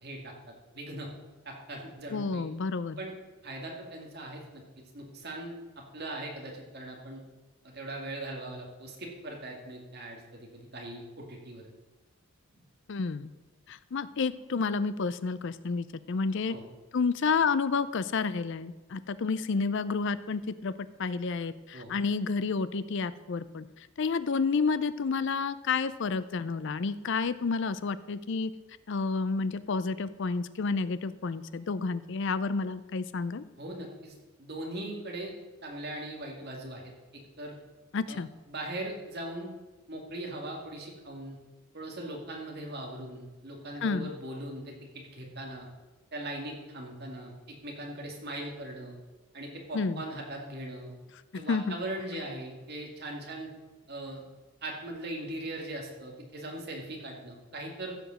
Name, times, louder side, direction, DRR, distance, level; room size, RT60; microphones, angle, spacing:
voice 1, 0.0-1.1 1.4-2.5 3.0-3.1 3.4-7.2 7.6-11.7 16.5-16.6 21.7-21.9 33.6-34.1 34.4-35.3 35.6-37.6 38.1-38.2 38.5-39.5 39.9-41.4 41.7-45.7 46.1-48.9 49.3-51.0 51.3-53.5 53.9-54.2 54.6-57.9, right 1 dB, 45° right, 0 dB, 2.2 m, -40 dB
voice 2, 2.1-3.0 12.9-13.3 13.7-16.6 16.9-20.7 21.0-28.5 28.9-33.4 37.9-38.3 43.8-44.1 49.7-50.0 51.3-51.8, left 4 dB, 55° left, 15 dB, 0.4 m, -30 dB
14.5 x 5.1 x 6.4 m, 1.2 s
head